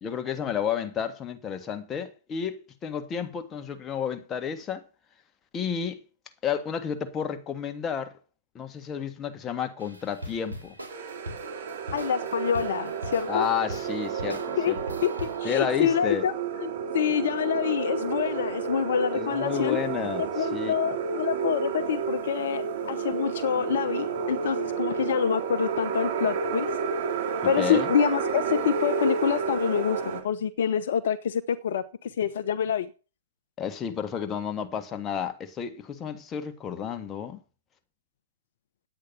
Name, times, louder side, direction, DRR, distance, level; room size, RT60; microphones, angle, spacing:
voice 1, 0.0-4.8 5.5-6.0 6.4-8.1 8.5-10.7 13.3-14.8 15.4-16.2 19.1-20.7 27.4-27.9 33.6-37.4, left 7 dB, 20° left, 1.6 m, -31 dB
sound 1, 9.8-15.4, equal, 90° right, 4.1 m, -41 dB
sound 2, 10.9-30.2, right 5 dB, 55° right, 2.7 m, -31 dB
voice 2, 11.9-13.5 14.6-15.1 15.4-16.3 16.6-19.8 20.4-26.7 27.4-32.9, left 8 dB, 60° left, 0.8 m, -27 dB
10.5 x 8.7 x 5.6 m
hypercardioid pair, 120°, 0 cm